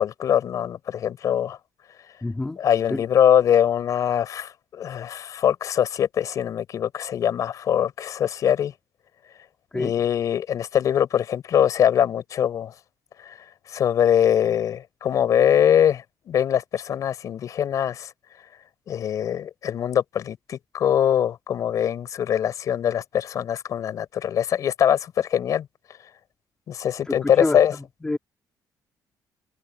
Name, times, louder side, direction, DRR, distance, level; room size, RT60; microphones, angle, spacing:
voice 1, 0.0-1.6 2.6-8.7 9.7-12.7 13.7-18.1 18.9-25.7 26.7-27.7, left 9 dB, 50° left, 5.6 m, -22 dB
voice 2, 2.2-2.6 2.9-3.0 9.7-9.9 27.1-28.2, left 2 dB, 10° left, 3.5 m, -28 dB
cardioid pair, 180°, 7 cm